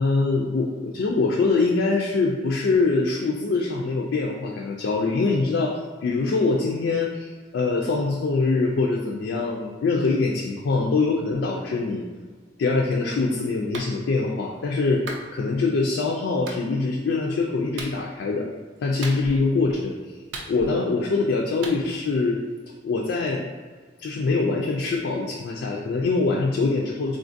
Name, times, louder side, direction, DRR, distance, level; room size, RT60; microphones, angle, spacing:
voice 1, 0.0-12.0 12.6-15.0 15.3-18.5 18.8-20.0 20.5-22.4 22.8-23.4 24.0-27.2, left 3 dB, 70° left, -1 dB, 0.3 m, -24 dB
Clapping, 13.7-13.9 15.1-15.3 16.5-16.6 17.8-18.0 19.0-19.5 20.3-20.9 21.6-21.8, right 2 dB, 70° right, 0.4 m, -36 dB
3.7 x 2.4 x 2.6 m, 1.5 s
head